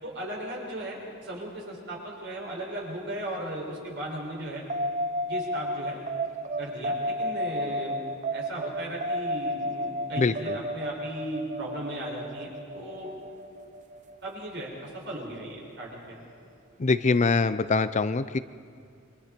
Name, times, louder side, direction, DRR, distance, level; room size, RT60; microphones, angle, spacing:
voice 1, 0.0-4.6 5.3-6.0 6.6-8.0 8.3-13.1 14.2-16.1, right 1 dB, 60° right, -2 dB, 6.0 m, -36 dB
sound 1, 4.7-15.5, equal, 35° right, 0.8 m, -33 dB
voice 2, 10.2-10.6 16.8-18.4, left 4 dB, 35° left, 13 dB, 0.5 m, -24 dB
29.0 x 24.0 x 4.5 m, 2.3 s
head